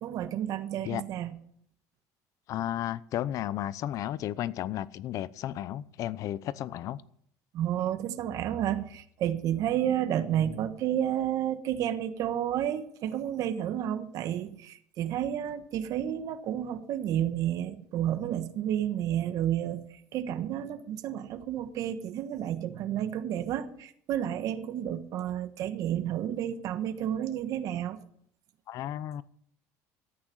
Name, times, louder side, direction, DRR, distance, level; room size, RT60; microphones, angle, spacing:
voice 1, 0.0-1.3 7.5-19.8 20.1-28.0, right 10 dB, 55° right, 1.3 m, -31 dB
voice 2, 2.5-7.0 28.7-29.2, left 12 dB, 55° left, 0.7 m, -33 dB
14.0 x 9.0 x 7.2 m
cardioid pair, 135°, 7 cm